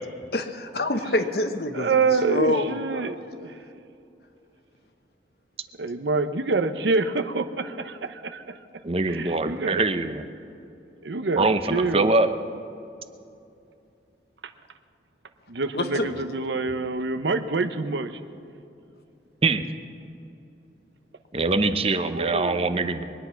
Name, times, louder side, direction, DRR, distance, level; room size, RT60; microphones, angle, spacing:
voice 1, 0.3-3.1 15.7-16.1, left 1 dB, 60° left, 8 dB, 1.0 m, -27 dB
voice 2, 1.7-3.5 5.8-8.4 9.1-9.8 11.0-12.1 15.5-18.1 22.1-22.7, right 3 dB, 90° right, 9 dB, 0.9 m, -26 dB
voice 3, 8.8-10.2 11.4-12.3 19.4-19.6 21.3-23.0, right 3 dB, 35° right, 10 dB, 0.7 m, -23 dB
23.0 x 9.9 x 5.8 m, 2.7 s
head